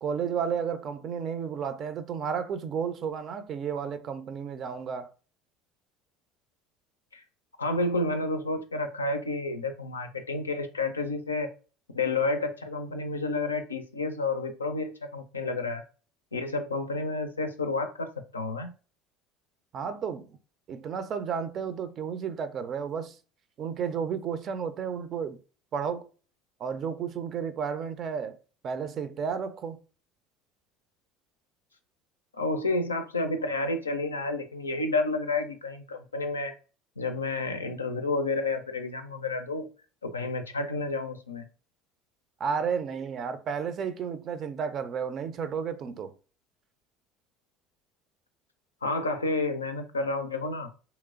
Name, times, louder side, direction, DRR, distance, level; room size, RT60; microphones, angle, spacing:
voice 1, 0.0-5.1 19.7-20.4 20.7-23.2 23.6-25.4 25.7-26.1 26.6-28.4 28.6-29.8 42.4-46.1, right 7 dB, 45° right, 0.4 m, -32 dB
voice 2, 7.6-11.5 11.9-15.8 16.3-18.7 32.3-36.5 37.0-39.7 40.0-41.4 48.8-50.7, left 3 dB, 90° left, 0.4 m, -30 dB
3.1 x 2.9 x 2.4 m
figure-of-eight pair, 65°, 0 cm